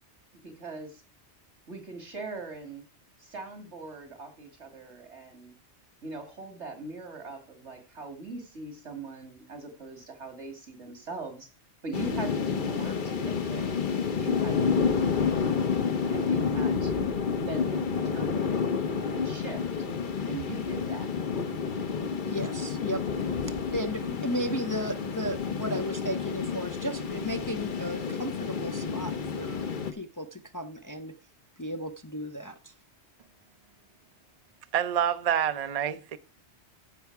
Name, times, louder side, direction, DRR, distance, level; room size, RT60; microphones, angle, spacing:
voice 1, 0.4-1.0 1.7-2.8 3.2-5.5 6.0-11.5 11.8-13.8 14.2-15.6 16.1-18.7 19.1-19.6 20.3-21.1, right 3 dB, 85° right, 2.9 m, -41 dB
sound 1, 11.9-29.9, left 5 dB, 50° left, 1.0 m, -29 dB
voice 2, 22.3-23.0 23.7-29.6 29.9-31.1 31.6-32.7, equal, 20° left, 0.6 m, -34 dB
voice 3, 34.7-36.2, right 9 dB, 45° right, 0.6 m, -27 dB
14.0 x 5.7 x 4.7 m
omnidirectional pair, 1.1 m